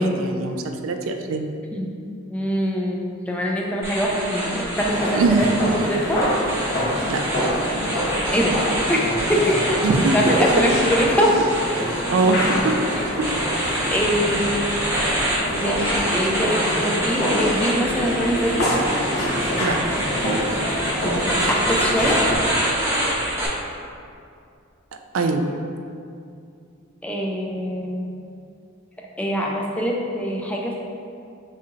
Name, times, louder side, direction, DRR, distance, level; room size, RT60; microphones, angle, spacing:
voice 1, 0.0-1.5 5.1-5.6 7.1-7.2 9.8-10.6 12.1-12.8 13.2-13.3 19.6-19.8 25.1-25.5, right 3 dB, 75° right, 5 dB, 0.4 m, -21 dB
voice 2, 2.3-5.2 5.8-6.2 8.3-8.6 8.9-9.0 9.3-9.8 10.1-11.3 13.9-14.8 15.4-18.7 21.5-22.2 27.0-28.0 29.2-30.7, equal, 5° left, -2 dB, 0.4 m, -23 dB
sound 1, 3.8-23.5, right 1 dB, 15° right, 0.7 m, -26 dB
sound 2, 4.8-22.3, equal, 50° left, 1.0 m, -26 dB
6.4 x 2.8 x 2.5 m, 2.4 s
head